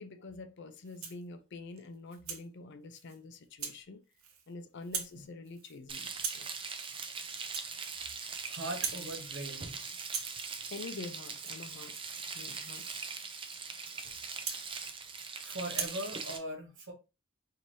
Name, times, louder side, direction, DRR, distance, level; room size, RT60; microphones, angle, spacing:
voice 1, 0.0-4.0 4.5-6.5 10.7-12.8, left 3 dB, 60° left, 0.5 m, -46 dB
Rattle (instrument), 0.8-1.3 1.8-2.5 2.9-3.2 3.6-3.8 4.1-4.5 4.8-5.2 5.4-5.8 6.1-6.5 6.9-7.1 7.4-8.4 8.7-9.1 9.4-9.7 10.0-15.3 15.7-16.0, right 7 dB, 85° right, 0.8 m, -42 dB
Frying (food), 5.9-16.4, right 5 dB, 25° right, 0.5 m, -41 dB
voice 2, 8.4-9.8 15.4-16.9, right 1 dB, 65° right, 1.3 m, -40 dB
4.6 x 2.8 x 2.7 m
head